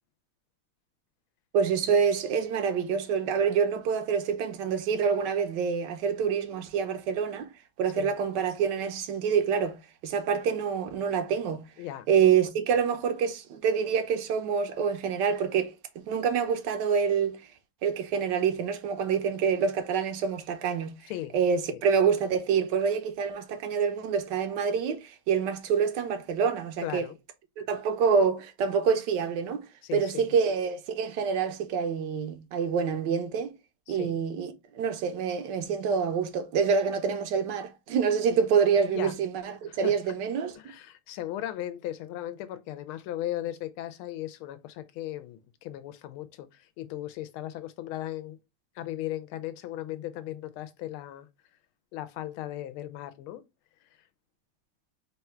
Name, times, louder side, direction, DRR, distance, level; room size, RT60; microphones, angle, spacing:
voice 1, 1.5-7.5 7.8-11.7 12.1-17.4 17.8-27.0 27.6-29.6 29.9-33.5 33.9-40.6, right 6 dB, 70° right, 1.1 m, -27 dB
voice 2, 26.8-27.2 29.8-30.3 33.9-34.2 38.8-39.1 39.7-40.0 40.6-48.4 48.7-51.3 51.9-53.4, left 13 dB, 80° left, 1.4 m, -37 dB
3.7 x 2.3 x 4.3 m
omnidirectional pair, 2.3 m